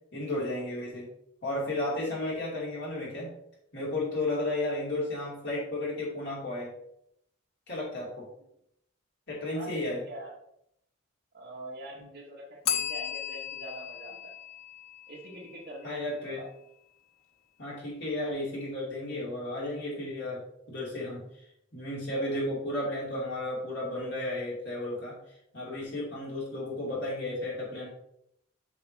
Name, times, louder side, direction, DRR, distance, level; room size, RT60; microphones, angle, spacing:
voice 1, 0.1-1.1 1.4-3.3 3.7-6.7 7.7-8.3 9.3-10.0 15.8-16.4 17.6-21.3 21.7-25.2 25.5-27.9, left 1 dB, 55° left, -5 dB, 3.1 m, -33 dB
voice 2, 1.8-2.2 9.5-10.3 11.3-14.3 15.1-16.5 22.1-22.4, right 1 dB, 50° right, -4 dB, 2.4 m, -44 dB
Bell, 12.6-15.5, left 9 dB, 85° left, 0.8 m, -35 dB
7.3 x 6.8 x 3.0 m, 0.74 s
head